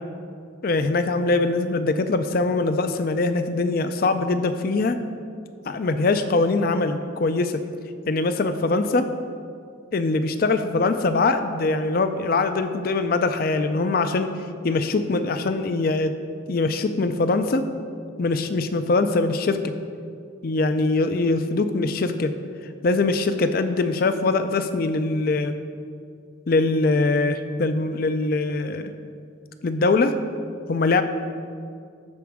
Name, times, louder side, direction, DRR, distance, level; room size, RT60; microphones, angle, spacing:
voice 1, 0.6-5.0 5.7-7.6 8.1-9.1 9.9-14.3 14.6-16.2 16.5-17.6 18.2-19.7 20.4-22.3 22.8-25.6 26.5-28.9 29.6-30.1 30.7-31.0, left 3 dB, 45° left, 9 dB, 0.4 m, -22 dB
13.0 x 4.7 x 3.5 m, 2.3 s
head